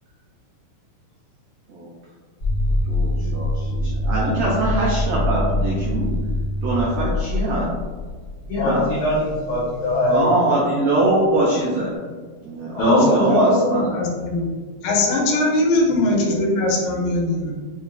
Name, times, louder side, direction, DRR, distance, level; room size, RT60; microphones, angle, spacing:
sound 1, 2.4-10.1, left 1 dB, 55° left, 1.0 m, -24 dB
voice 1, 2.9-6.2 6.6-7.7 10.1-12.0 12.4-14.0 16.3-16.4 17.5-17.6, right 2 dB, 80° right, -5 dB, 1.9 m, -22 dB
voice 2, 8.5-10.3 12.8-13.2, left 1 dB, 90° left, -7 dB, 1.6 m, -20 dB
voice 3, 12.8-14.5 14.8-17.5, left 2 dB, 75° left, -2 dB, 2.0 m, -21 dB
5.9 x 2.7 x 2.4 m, 1.5 s
omnidirectional pair, 4.3 m